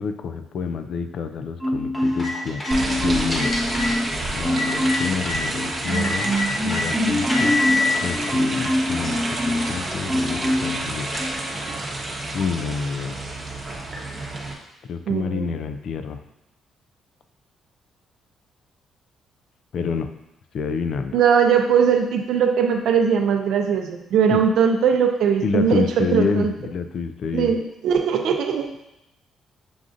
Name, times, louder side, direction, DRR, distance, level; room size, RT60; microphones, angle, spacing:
voice 1, 0.0-2.6 2.9-3.6 4.3-7.6 8.0-9.2 9.4-11.1 12.3-13.2 14.9-16.2 19.7-20.1 20.5-21.2 24.3-24.4 25.4-27.5, left 5 dB, 65° left, 8 dB, 0.3 m, -28 dB
Marimba xylophone, 1.6-2.4 2.7-4.1 4.4-5.2 5.5-9.7 10.1-10.8 11.2-11.4, left 1 dB, ahead, 0.9 m, -24 dB
sound 1, 2.0-5.4 5.9-6.8 7.3-7.9 8.5-8.6 9.0-11.8, left 2 dB, 25° left, 1.1 m, -28 dB
sound 2, 2.7-14.5, right 2 dB, 35° right, 0.9 m, -30 dB
voice 2, 15.1-15.5 21.1-26.5 27.3-28.9, right 7 dB, 80° right, 4 dB, 0.5 m, -20 dB
6.9 x 2.5 x 2.5 m, 0.87 s
cardioid pair, 90°, 0 cm